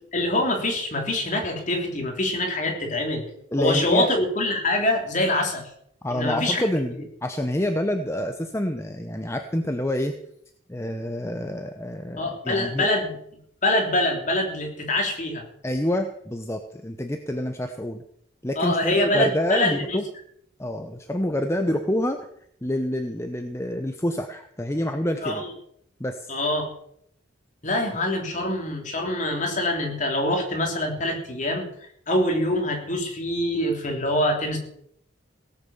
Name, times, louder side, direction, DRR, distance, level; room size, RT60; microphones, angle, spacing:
voice 1, 0.1-3.2 3.6-5.6 6.1-6.7 12.2-13.2 13.6-15.4 18.6-20.0 25.2-25.5 26.3-26.7 27.6-31.7 32.1-34.6, left 1 dB, 40° left, 2 dB, 3.4 m, -24 dB
voice 2, 3.5-4.1 6.0-10.1 10.7-12.9 15.6-18.0 18.4-20.0 20.6-22.3 22.6-25.4 26.0-26.3, left 1 dB, 15° left, 6 dB, 0.8 m, -27 dB
17.5 x 8.4 x 7.2 m, 0.71 s
head